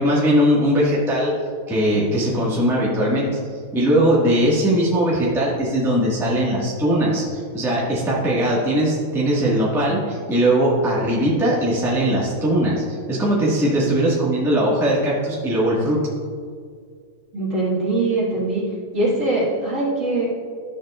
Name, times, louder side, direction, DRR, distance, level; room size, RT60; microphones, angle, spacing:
voice 1, 0.0-1.3 1.7-3.2 3.7-16.0, right 1 dB, ahead, -7 dB, 1.3 m, -20 dB
voice 2, 17.3-18.6 18.9-20.3, right 2 dB, 40° right, -7 dB, 2.3 m, -22 dB
12.5 x 7.3 x 2.4 m, 2.1 s
omnidirectional pair, 2.3 m